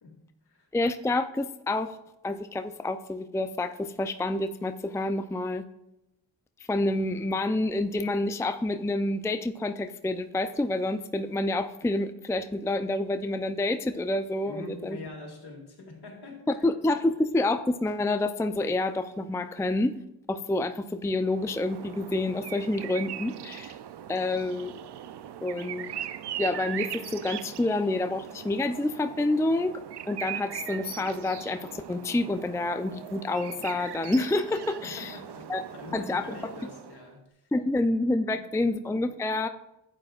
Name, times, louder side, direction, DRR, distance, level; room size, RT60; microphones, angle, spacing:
voice 1, 0.0-0.7 14.4-16.7 34.8-37.5 38.3-38.7, left 3 dB, 65° left, 2.3 m, -44 dB
voice 2, 0.7-2.0 2.2-5.6 6.7-15.0 16.6-19.9 20.3-23.7 24.1-24.7 25.4-25.9 26.4-29.8 30.1-35.2 35.5-35.6 35.9-36.2 37.5-39.5, left 2 dB, 5° left, 0.5 m, -28 dB
sound 1, 21.2-37.1, right 11 dB, 70° right, 0.6 m, -40 dB
11.5 x 8.8 x 2.4 m
cardioid pair, 55°, 42 cm